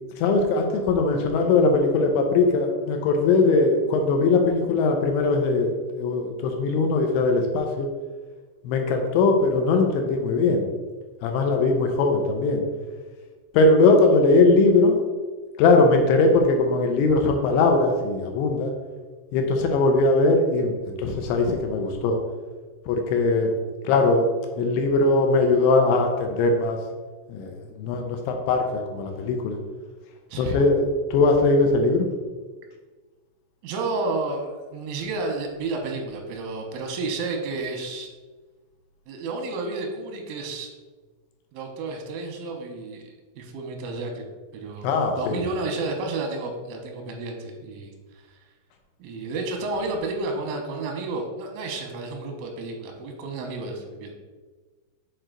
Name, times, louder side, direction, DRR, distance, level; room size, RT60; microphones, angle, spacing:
voice 1, 0.2-7.9 8.6-10.7 11.2-12.6 13.5-15.0 15.6-18.7 19.3-22.2 22.9-23.5 23.8-24.3 24.6-26.8 27.3-29.6 30.4-32.1 44.8-45.4, left 3 dB, 85° left, 4 dB, 2.9 m, -20 dB
voice 2, 33.6-38.1 39.1-40.7 41.5-43.0 43.4-44.3 44.5-47.9 49.0-54.2, right 3 dB, 90° right, 3 dB, 3.4 m, -31 dB
7.8 x 4.6 x 3.8 m, 1.3 s
omnidirectional pair, 5.6 m